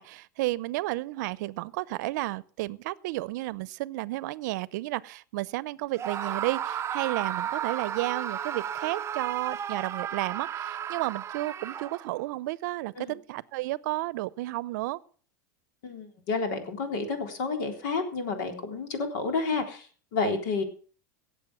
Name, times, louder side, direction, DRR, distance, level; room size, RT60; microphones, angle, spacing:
voice 1, 0.0-15.0 20.2-20.4, right 19 dB, 70° right, 0.7 m, -32 dB
Screaming, 6.0-12.2, right 9 dB, 25° right, 0.6 m, -34 dB
voice 2, 15.8-19.9 20.1-20.6, left 4 dB, 70° left, 3.8 m, -30 dB
17.0 x 7.6 x 6.2 m
supercardioid pair, 115°, 10 cm